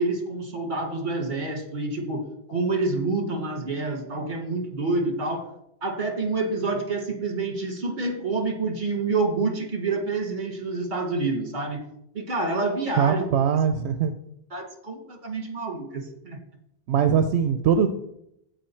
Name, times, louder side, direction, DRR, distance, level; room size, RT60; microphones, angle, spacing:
voice 1, 0.0-5.5 5.8-11.8 12.1-13.3 14.5-16.4, right 3 dB, 50° right, 5 dB, 1.7 m, -28 dB
voice 2, 13.0-14.1 16.9-17.9, right 7 dB, 80° right, 8 dB, 0.9 m, -21 dB
15.0 x 5.0 x 4.4 m, 0.78 s
omnidirectional pair, 1.1 m